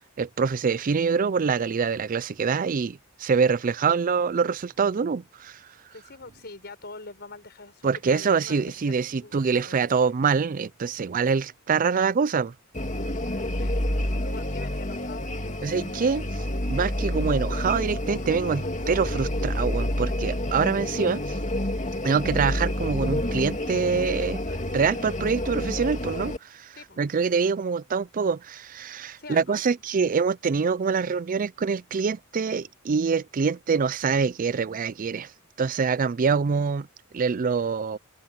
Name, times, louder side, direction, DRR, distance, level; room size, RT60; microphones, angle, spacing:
voice 1, 0.2-5.6 7.8-12.5 15.6-16.4 16.7-21.2 22.0-24.4 24.7-35.3 35.6-36.9 37.1-38.0, right 5 dB, 40° right, 0.4 m, -25 dB
voice 2, 3.7-4.0 5.9-9.8 10.1-10.2 13.5-13.8 14.2-15.3 20.9-21.4 26.8-27.0 29.2-29.6, left 3 dB, 50° left, 6.0 m, -44 dB
sound 1, 12.7-26.4, left 1 dB, 35° left, 2.5 m, -29 dB
open air
head